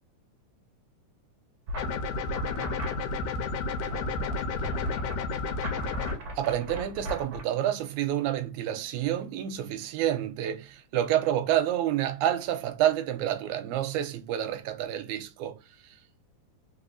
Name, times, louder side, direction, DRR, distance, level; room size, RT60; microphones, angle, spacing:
sound 1, 1.7-7.4, equal, 50° right, 1.2 m, -39 dB
sound 2, 1.8-6.2, left 3 dB, 80° left, 2.1 m, -31 dB
voice 1, 6.4-15.6, right 11 dB, 80° right, 1.9 m, -28 dB
4.1 x 4.0 x 2.5 m
omnidirectional pair, 3.7 m